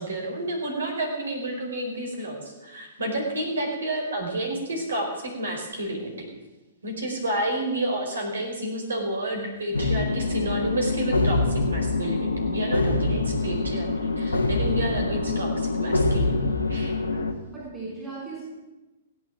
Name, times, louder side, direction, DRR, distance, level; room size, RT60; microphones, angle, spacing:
voice 1, 0.0-6.3 6.8-16.4 16.7-16.9, right 1 dB, 70° right, 1 dB, 4.6 m, -30 dB
sound 1, 9.7-17.3, left 3 dB, 75° left, 1.4 m, -25 dB
voice 2, 17.5-18.5, right 3 dB, 10° right, -7 dB, 5.9 m, -37 dB
17.0 x 8.7 x 7.6 m, 1.1 s
figure-of-eight pair, 110°, 0 cm